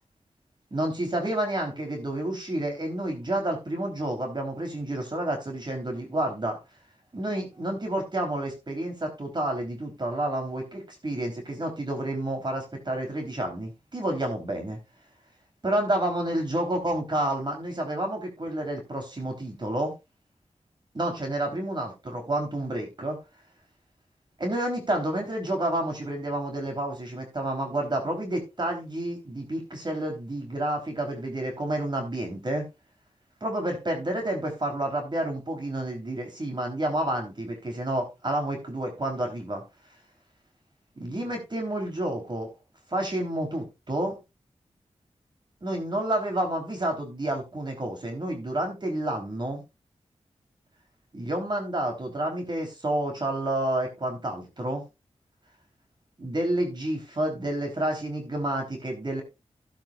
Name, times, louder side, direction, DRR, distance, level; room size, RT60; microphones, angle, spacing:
voice 1, 0.7-6.6 7.1-14.8 15.6-19.9 20.9-23.2 24.4-32.6 33.4-39.6 41.0-42.5 42.9-44.2 45.6-49.6 51.1-54.8 56.2-59.2, right 1 dB, 40° right, 3.8 m, -29 dB
15.5 x 8.3 x 2.5 m
wide cardioid pair, 80°, 12 cm